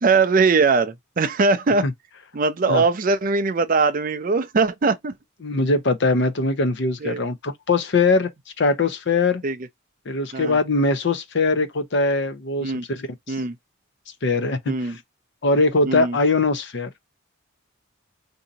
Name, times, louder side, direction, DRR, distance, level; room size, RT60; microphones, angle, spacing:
voice 1, 0.0-1.9 2.3-5.1 7.0-7.2 9.4-9.6 10.3-10.6 12.6-12.8 13.3-13.6 14.7-15.0 15.9-16.2, right 4 dB, 40° right, 0.5 m, -21 dB
voice 2, 5.4-8.3 8.6-9.4 10.1-13.4 14.2-14.9 15.4-16.9, left 3 dB, 55° left, 0.6 m, -21 dB
2.8 x 2.6 x 3.8 m
head